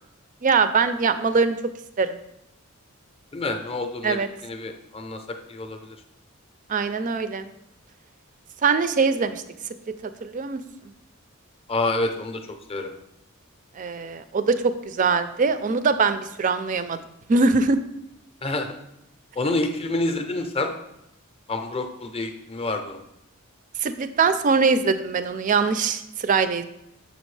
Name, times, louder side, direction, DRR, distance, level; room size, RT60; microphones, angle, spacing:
voice 1, 0.4-1.6 2.0-2.2 4.0-4.3 6.7-7.5 8.6-9.4 9.9-10.0 10.2-10.6 13.8-17.0 17.3-17.8 23.8-26.6, right 4 dB, 35° right, 11 dB, 0.3 m, -22 dB
voice 2, 3.3-5.2 5.5-6.0 11.7-12.4 12.7-12.9 18.4-18.7 19.4-20.7 21.5-23.0, left 2 dB, 25° left, 6 dB, 0.5 m, -28 dB
6.8 x 5.2 x 3.2 m, 0.84 s
head